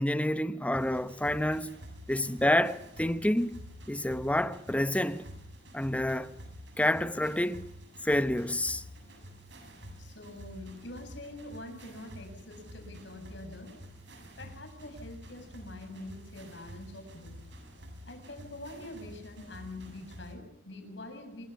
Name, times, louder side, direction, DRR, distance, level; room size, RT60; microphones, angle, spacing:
voice 1, 0.0-1.7 2.1-3.6 3.9-5.2 5.7-6.3 6.8-7.6 8.0-8.8, left 1 dB, 5° left, 0.9 m, -28 dB
sound 1, 0.7-20.3, equal, 65° right, 7.0 m, -49 dB
voice 2, 10.0-13.8 14.4-17.4 18.0-21.4, left 1 dB, 70° left, 7.5 m, -45 dB
26.5 x 23.0 x 6.0 m
head